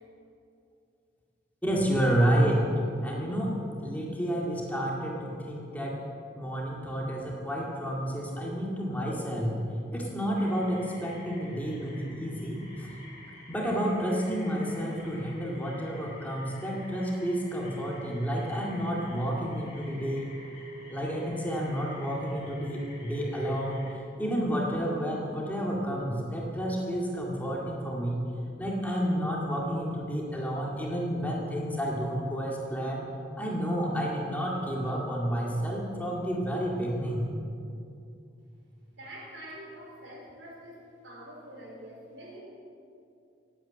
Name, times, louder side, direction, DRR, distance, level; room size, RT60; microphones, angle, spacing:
voice 1, 1.6-2.6 3.0-3.5 3.8-6.0 6.3-9.6 9.9-12.9 13.5-20.3 20.9-23.9 24.2-28.2 28.6-33.1 33.4-37.3, equal, 10° left, -3 dB, 2.1 m, -30 dB
sound 1, 10.4-23.9, left 2 dB, 35° left, 4.0 m, -51 dB
voice 2, 39.0-42.4, equal, 80° right, -2 dB, 4.5 m, -45 dB
17.0 x 8.9 x 7.6 m, 2.6 s
head